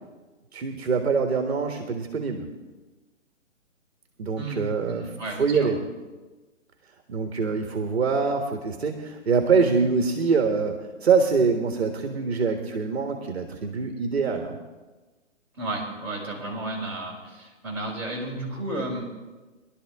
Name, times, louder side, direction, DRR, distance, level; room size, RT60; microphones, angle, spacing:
voice 1, 0.5-2.5 4.2-5.8 7.1-14.5, right 5 dB, 55° right, 5 dB, 1.5 m, -24 dB
voice 2, 4.4-5.7 15.5-19.0, right 2 dB, 5° right, -10 dB, 4.4 m, -33 dB
22.0 x 12.0 x 3.6 m, 1.2 s
hypercardioid pair, 170°, 39 cm